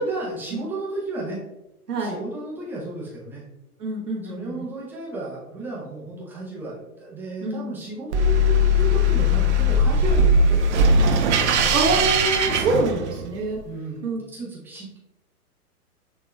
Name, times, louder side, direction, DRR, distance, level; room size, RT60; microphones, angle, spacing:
voice 1, 0.0-1.4 2.0-3.4 4.2-11.8 13.6-15.0, right 2 dB, 5° right, -6 dB, 0.7 m, -34 dB
voice 2, 3.8-4.5 7.4-7.7 11.7-13.6 14.0-14.2, right 2 dB, 80° right, -4 dB, 1.4 m, -25 dB
sound 1, 8.1-13.4, left 1 dB, 50° right, 0.5 m, -19 dB
6.0 x 3.1 x 2.2 m, 0.95 s
figure-of-eight pair, 120°, 46 cm